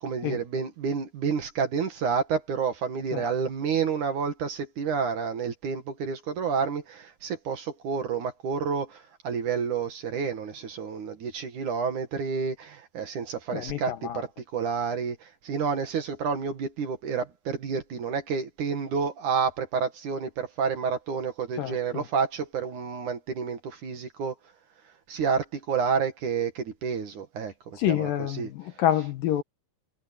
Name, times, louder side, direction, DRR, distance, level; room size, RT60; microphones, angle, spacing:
voice 1, 0.0-24.3 25.1-28.5, right 6 dB, 55° right, 3.0 m, -29 dB
voice 2, 13.5-14.2 21.6-22.0 27.8-29.4, left 11 dB, 70° left, 2.4 m, -28 dB
omnidirectional pair, 4.7 m